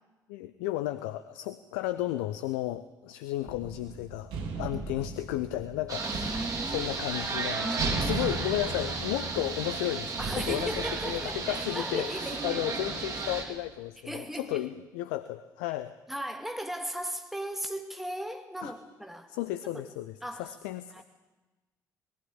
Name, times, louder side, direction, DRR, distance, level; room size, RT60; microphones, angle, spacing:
voice 1, 0.3-6.4 6.7-16.0 18.6-18.7 19.3-21.0, left 15 dB, 70° left, 12 dB, 0.6 m, -34 dB
sound 1, 3.4-12.1, right 4 dB, 60° right, 2.5 m, -38 dB
sound 2, 5.9-13.4, right 4 dB, 35° right, 3.9 m, -34 dB
voice 2, 6.0-6.9 7.6-8.2 10.2-12.8 14.0-14.7 16.1-19.3 19.8-19.9 20.2-20.5 20.9-21.0, equal, 5° right, 5 dB, 2.4 m, -37 dB
19.0 x 16.0 x 8.7 m, 1.2 s
figure-of-eight pair, 45°, 10 cm